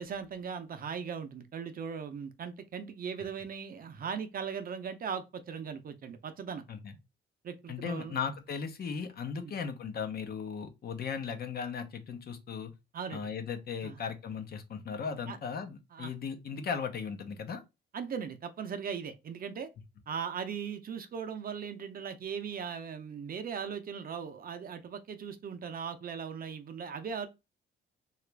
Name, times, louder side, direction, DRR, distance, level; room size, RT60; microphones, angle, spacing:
voice 1, 0.0-6.6 7.4-8.2 9.4-9.5 12.9-13.3 13.8-14.0 15.3-15.4 15.9-16.1 17.9-19.7 20.1-27.3, right 6 dB, 45° right, 0.6 m, -38 dB
voice 2, 7.7-12.7 13.1-17.6, left 6 dB, 50° left, 0.7 m, -37 dB
2.8 x 2.4 x 3.3 m
cardioid pair, 90°, 20 cm